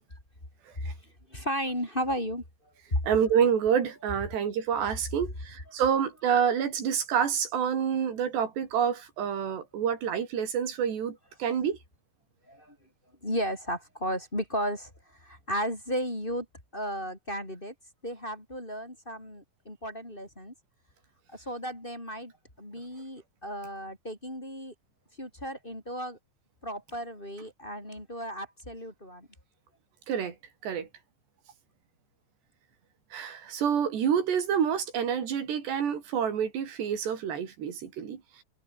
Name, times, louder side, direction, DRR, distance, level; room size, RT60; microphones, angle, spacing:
voice 1, 1.0-2.4 2.9-3.2 12.5-12.8 13.2-16.5 16.7-17.7 18.0-20.5 21.3-22.3 22.6-24.7 25.2-26.2 26.6-29.3, equal, 10° left, 4.8 m, -34 dB
voice 2, 3.0-11.8 30.1-30.3 30.6-30.9 33.1-38.2, right 8 dB, 85° right, 5.6 m, -28 dB
omnidirectional pair, 4.8 m